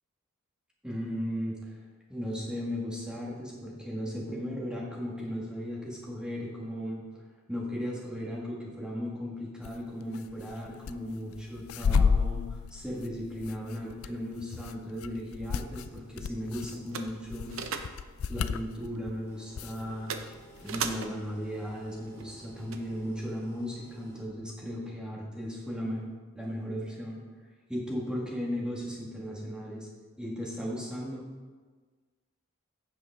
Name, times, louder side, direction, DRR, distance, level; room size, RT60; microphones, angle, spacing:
voice 1, 0.8-1.8 2.1-7.0 7.5-17.5 18.3-20.2 20.6-26.1 26.3-27.2 27.7-29.9 30.2-31.3, equal, 5° right, -4 dB, 1.7 m, -36 dB
sound 1, 9.6-9.8 10.1-10.9 11.3-19.1 19.6-20.3 20.6-21.0, left 5 dB, 80° left, 0.4 m, -31 dB
sound 2, 15.2-23.2, right 6 dB, 65° right, 0.7 m, -42 dB
sound 3, 19.2-24.2, right 1 dB, 15° left, 2.5 m, -56 dB
15.5 x 5.2 x 3.6 m, 1.4 s
head